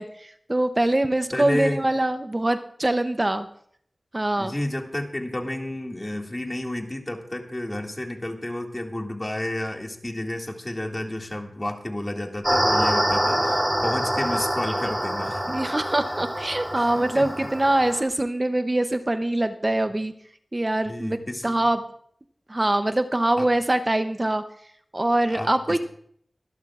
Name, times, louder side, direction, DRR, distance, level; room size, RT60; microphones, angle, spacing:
voice 1, 0.0-3.5 4.1-4.5 15.5-20.1 20.5-21.8 22.5-24.4 24.9-25.8, right 1 dB, 35° right, 9 dB, 0.7 m, -23 dB
voice 2, 1.3-1.8 4.4-15.4 16.8-16.9 17.1-17.5 20.9-21.6 23.4-23.5 25.3-25.8, left 1 dB, 30° left, 2 dB, 2.1 m, -31 dB
sound 1, 12.4-18.0, equal, 15° right, 3.0 m, -25 dB
24.0 x 11.5 x 2.4 m, 0.65 s
wide cardioid pair, 50°, 0 cm